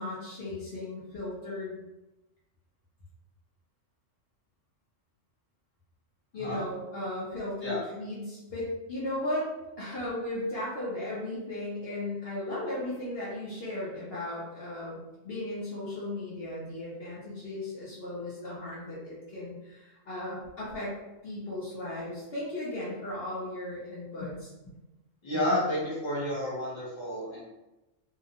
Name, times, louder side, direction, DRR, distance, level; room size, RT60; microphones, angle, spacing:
voice 1, 0.0-1.8 6.3-9.5 9.8-15.0 15.2-20.9 21.2-24.3, left 1 dB, 55° left, -8 dB, 0.9 m, -36 dB
voice 2, 25.2-27.4, left 1 dB, 25° left, -7 dB, 0.9 m, -30 dB
2.7 x 2.1 x 2.8 m, 0.99 s
omnidirectional pair, 1.3 m